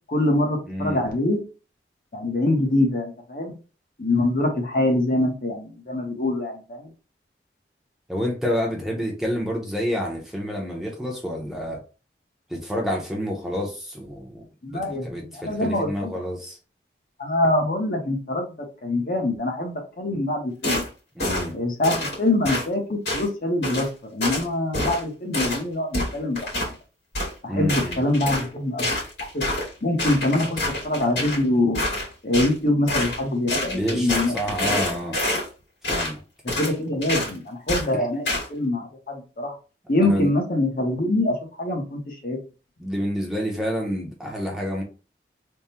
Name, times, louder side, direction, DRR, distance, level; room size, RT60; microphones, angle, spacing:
voice 1, 0.1-1.4 2.1-3.6 4.0-6.9 14.6-16.2 17.2-18.5 18.8-20.8 21.5-26.6 27.4-29.0 29.3-29.5 29.8-31.8 32.2-34.4 34.7-34.8 36.4-38.2 38.5-39.5 39.9-42.4, left 1 dB, 50° left, 0.9 m, -24 dB
voice 2, 0.7-1.0 8.1-11.8 12.5-16.6 21.2-21.5 27.5-28.0 33.7-35.2 35.9-36.2 38.0-38.1 40.0-40.3 42.8-44.8, equal, ahead, 0.7 m, -28 dB
sound 1, 20.6-20.9 21.2-21.5 21.8-22.2 22.5-22.6 23.1-23.3 23.6-23.9 24.2-24.4 24.7-25.0 25.3-25.6 25.9-26.7 27.1-27.3 27.7-28.5 28.8-29.7 30.0-31.4 31.7-32.5 32.9-33.2 33.5-35.5 35.8-36.1 36.5-36.7 37.0-37.3 37.7-37.9 38.3-38.5, left 1 dB, 70° left, 2.0 m, -27 dB
3.6 x 2.1 x 4.2 m
head